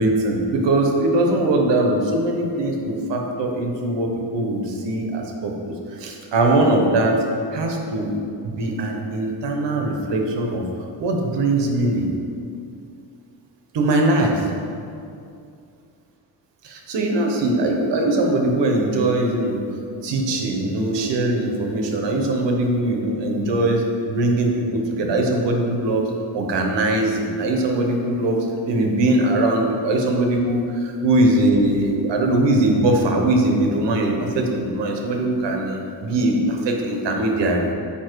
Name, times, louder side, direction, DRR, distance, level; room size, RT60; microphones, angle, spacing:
voice 1, 0.0-7.2 7.5-8.2 8.4-10.6 11.0-12.1 13.7-14.5 16.6-19.6 20.0-26.1 26.3-28.4 28.7-37.6, right 2 dB, 85° right, 1 dB, 1.1 m, -21 dB
7.3 x 5.1 x 4.6 m, 2.5 s
cardioid pair, 115°, 42 cm